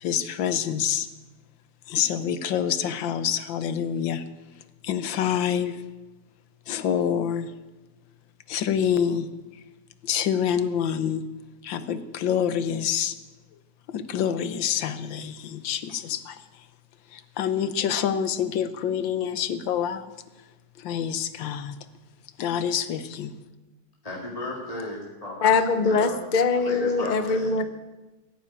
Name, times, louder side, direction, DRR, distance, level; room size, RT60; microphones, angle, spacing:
voice 1, 0.0-1.1 1.9-4.2 4.8-5.8 6.7-7.5 8.5-9.3 10.0-11.2 11.6-13.1 13.9-16.4 17.1-20.1 20.8-21.8 22.4-23.3, left 8 dB, 80° left, 12 dB, 1.6 m, -26 dB
voice 2, 24.0-26.2 26.5-27.5, left 1 dB, 20° left, -2 dB, 2.1 m, -35 dB
voice 3, 25.4-27.6, left 4 dB, 60° left, 10 dB, 0.4 m, -22 dB
16.0 x 9.1 x 8.9 m, 1.1 s
omnidirectional pair, 2.1 m